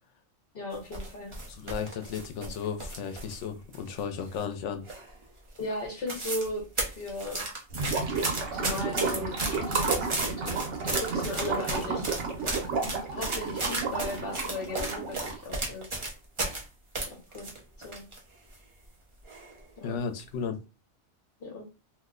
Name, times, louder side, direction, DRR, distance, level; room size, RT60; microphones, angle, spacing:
voice 1, 0.5-1.3 5.6-7.5 7.9-12.1 13.1-15.9 17.1-17.5 17.8-18.1 19.8-20.0 21.4-21.6, left 2 dB, 55° left, 1.0 m, -37 dB
sound 1, 0.7-3.4 3.7-4.5 4.9-5.2 5.6-5.7 5.9-6.5 6.8-16.6 17.0-18.2 18.5-18.6 19.3-19.6 20.0-20.2, right 2 dB, 30° right, 0.7 m, -34 dB
voice 2, 1.5-4.8 19.8-20.6, left 6 dB, 85° left, 0.9 m, -34 dB
Gurgling / Liquid, 7.7-15.4, right 4 dB, 90° right, 1.1 m, -32 dB
2.7 x 2.1 x 3.6 m
omnidirectional pair, 1.2 m